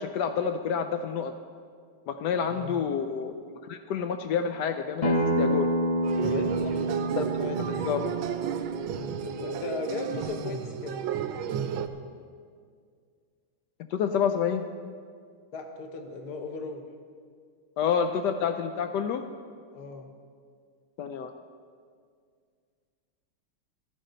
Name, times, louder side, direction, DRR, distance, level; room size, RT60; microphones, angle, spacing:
voice 1, 0.0-1.3 2.1-5.7 7.2-7.3 7.6-8.1 13.9-14.6 17.8-19.2 21.0-21.3, left 7 dB, 85° left, 7 dB, 0.9 m, -28 dB
voice 2, 2.5-2.8 6.1-8.2 8.9-11.1 15.5-16.8 19.7-20.1, left 3 dB, 50° left, 4 dB, 1.5 m, -37 dB
Acoustic guitar, 5.0-10.2, right 1 dB, 35° left, 0.6 m, -29 dB
sound 1, 6.0-11.9, right 8 dB, 75° right, 1.4 m, -33 dB
15.0 x 13.0 x 3.9 m, 2.1 s
omnidirectional pair, 2.4 m